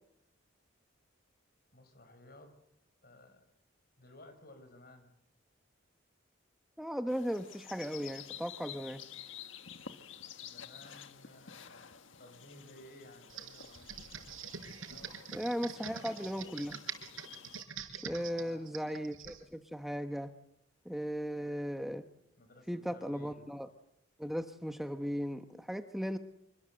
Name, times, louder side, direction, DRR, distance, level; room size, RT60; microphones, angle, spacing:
voice 1, 1.7-2.5 3.0-3.4 4.0-5.1 10.4-15.3 18.3-18.8 22.4-23.5, left 1 dB, 50° left, 8 dB, 6.0 m, -57 dB
voice 2, 6.8-9.0 15.3-16.8 17.9-20.3 20.8-22.0 22.7-23.7 24.2-26.2, equal, ahead, 7 dB, 0.9 m, -37 dB
sound 1, 7.1-17.6, left 8 dB, 75° left, 1.6 m, -51 dB
Computer keyboard, 13.3-19.4, right 7 dB, 85° right, 4.9 m, -45 dB
26.5 x 25.0 x 7.8 m, 0.79 s
head